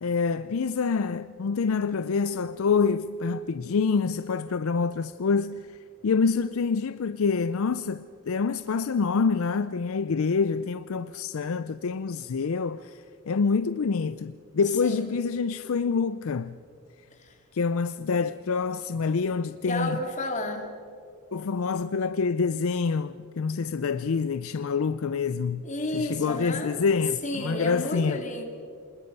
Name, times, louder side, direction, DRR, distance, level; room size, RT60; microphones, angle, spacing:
voice 1, 0.0-5.7 6.0-16.6 17.5-20.0 21.3-25.7 25.9-28.2, left 5 dB, 65° left, 0.5 m, -26 dB
voice 2, 19.6-20.7 25.6-26.8 27.2-28.4, left 1 dB, 35° left, 2.5 m, -31 dB
26.0 x 20.5 x 5.5 m
head